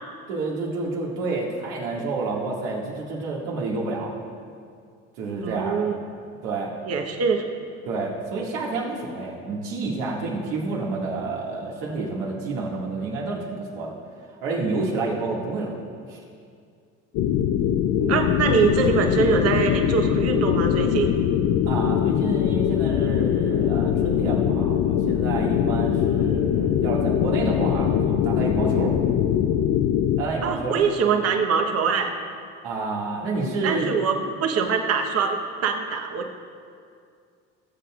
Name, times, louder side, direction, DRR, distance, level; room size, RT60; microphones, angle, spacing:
voice 1, 0.3-4.1 5.2-5.9 6.4-6.7 7.9-13.9 14.4-15.8 16.1-16.2 18.0-18.2 21.7-28.9 30.2-30.8 32.6-33.9, right 3 dB, 80° right, -3 dB, 2.2 m, -29 dB
voice 2, 5.4-5.9 6.8-7.4 18.1-21.1 30.4-32.1 33.6-36.3, right 5 dB, 50° right, 4 dB, 1.1 m, -23 dB
sound 1, 17.1-30.2, left 9 dB, 60° left, 0.6 m, -22 dB
18.0 x 7.8 x 2.5 m, 2.2 s
supercardioid pair, 80°, 32 cm